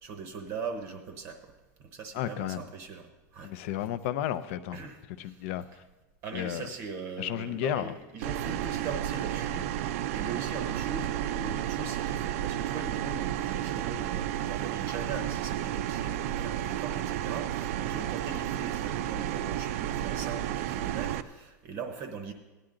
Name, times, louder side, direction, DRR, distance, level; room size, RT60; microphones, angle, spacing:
voice 1, 0.0-1.5 1.9-3.5 4.7-5.8 6.2-22.3, right 5 dB, 30° right, 6 dB, 0.8 m, -40 dB
voice 2, 2.1-2.6 3.4-4.8 5.2-5.6 6.3-6.7 7.2-7.9, left 11 dB, 45° left, 14 dB, 0.5 m, -32 dB
sound 1, 8.2-21.2, right 12 dB, 50° right, 0.5 m, -32 dB
16.5 x 10.0 x 3.8 m, 1.2 s
supercardioid pair, 180°, 10 cm